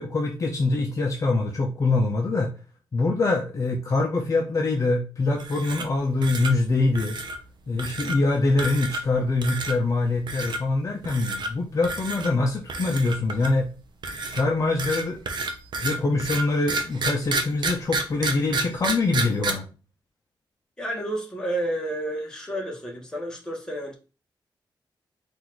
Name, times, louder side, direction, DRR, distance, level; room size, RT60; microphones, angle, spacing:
voice 1, 0.0-2.5 2.9-7.2 7.7-13.7 14.3-15.2 15.8-19.7, left 3 dB, 40° left, 0.6 m, -24 dB
sound 1, 5.4-6.0 6.2-6.5 6.9-7.4 7.8-8.2 8.6-9.1 9.4-9.8 10.3-10.6 11.0-11.5 11.8-12.3 12.7-13.6 14.0-19.5, right 3 dB, 60° right, 0.7 m, -29 dB
voice 2, 20.8-24.0, right 1 dB, 10° left, 1.1 m, -30 dB
4.0 x 2.5 x 4.5 m
wide cardioid pair, 175°, 9 cm